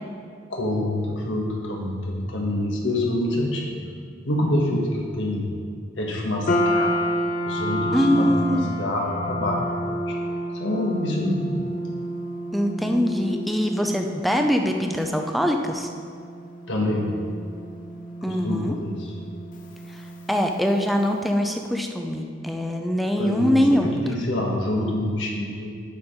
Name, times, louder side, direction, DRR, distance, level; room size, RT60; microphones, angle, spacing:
voice 1, 0.5-3.8 4.2-5.5 6.0-6.9 7.4-10.2 10.5-11.5 16.7-17.1 18.2-19.1 23.2-25.7, left 1 dB, 70° left, -2 dB, 1.4 m, -26 dB
sound 1, 6.5-20.9, equal, 45° left, 0.6 m, -30 dB
voice 2, 7.9-8.8 12.5-15.9 18.2-18.8 20.3-24.0, equal, ahead, 3 dB, 0.5 m, -23 dB
10.5 x 4.5 x 5.1 m, 2.2 s
head